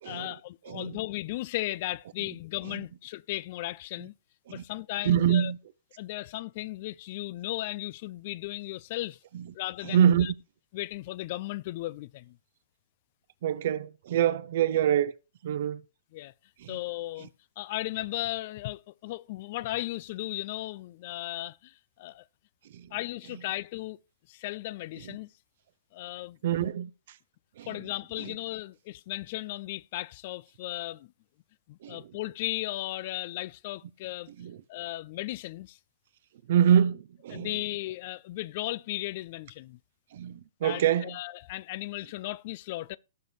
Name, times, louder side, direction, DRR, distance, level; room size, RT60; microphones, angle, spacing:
voice 1, 0.0-4.1 4.5-5.5 6.0-9.2 9.5-10.3 10.7-12.4 16.1-16.3 16.7-17.3 17.6-22.3 22.9-24.0 24.3-25.3 25.9-26.4 27.7-31.1 31.7-34.3 34.7-35.8 37.3-39.8 40.6-43.0, left 17 dB, 45° left, 0.4 m, -36 dB
voice 2, 0.7-1.0 4.5-4.6 5.0-5.6 9.3-9.4 9.8-10.3 13.4-15.1 15.4-15.8 16.6-16.8 22.7-22.9 25.0-25.2 26.4-26.9 27.6-27.8 31.8-32.0 34.4-34.6 36.5-37.5 40.1-41.2, right 9 dB, 50° right, 0.8 m, -25 dB
18.0 x 6.6 x 3.2 m
figure-of-eight pair, 110°, 0 cm